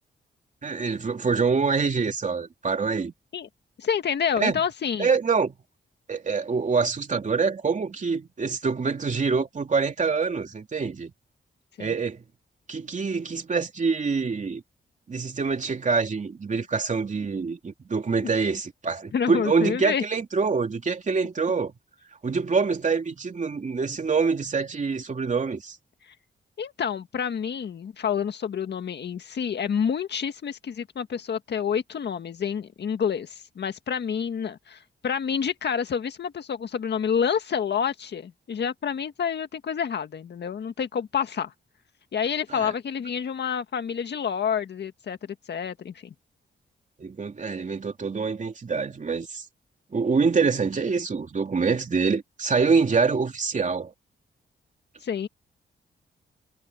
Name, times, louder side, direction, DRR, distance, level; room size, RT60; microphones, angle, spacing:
voice 1, 0.6-3.1 4.4-4.6 5.0-5.5 6.1-11.1 11.8-12.2 12.7-14.6 15.1-21.7 22.2-25.8 42.5-42.7 47.0-49.4 49.9-53.9, right 5 dB, 40° right, 3.1 m, -25 dB
voice 2, 3.8-5.1 11.8-11.9 18.2-18.3 19.1-20.0 26.1-26.2 26.6-41.5 42.1-46.1 55.0-55.3, left 7 dB, 65° left, 1.8 m, -28 dB
cardioid pair, 100°, 19 cm